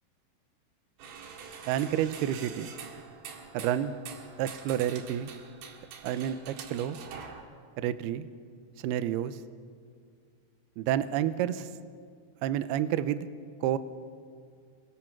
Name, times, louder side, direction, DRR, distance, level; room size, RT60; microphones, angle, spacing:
sound 1, 1.0-7.4, right 6 dB, 65° right, 3.6 m, -45 dB
voice 1, 1.7-2.7 3.5-3.9 4.4-5.3 6.0-7.0 7.8-8.3 8.8-9.4 10.8-11.7 12.4-13.3 13.6-13.8, right 11 dB, 90° right, 13 dB, 2.2 m, -29 dB
27.0 x 22.5 x 6.0 m, 2.1 s
omnidirectional pair, 5.6 m